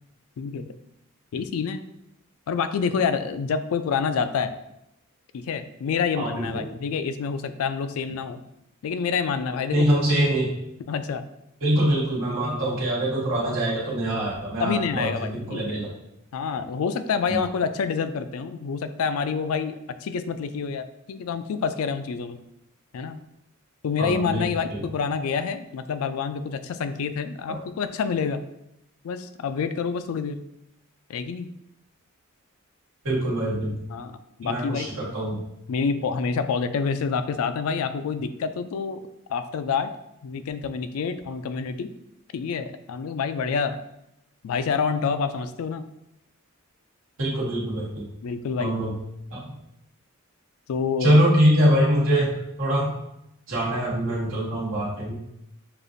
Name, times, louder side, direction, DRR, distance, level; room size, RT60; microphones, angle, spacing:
voice 1, 0.4-0.7 1.3-1.8 2.5-4.5 5.3-8.4 8.8-9.9 10.9-11.2 14.6-15.8 16.3-19.8 20.0-22.4 22.9-23.2 23.8-28.4 29.0-30.4 31.1-31.5 33.9-34.9 35.7-39.0 39.3-39.9 40.2-41.9 42.3-43.8 44.4-45.8 48.2-48.7 50.7-51.2, left 6 dB, 75° left, 10 dB, 0.3 m, -27 dB
voice 2, 6.1-6.7 9.7-10.6 11.6-15.9 17.3-17.4 24.0-24.9 27.5-27.7 33.0-33.8 34.4-35.4 47.2-48.0 48.6-48.9 49.3-49.6 51.0-53.0 53.5-55.1, right 1 dB, 65° right, -6 dB, 1.4 m, -24 dB
6.6 x 2.4 x 2.6 m, 0.83 s
head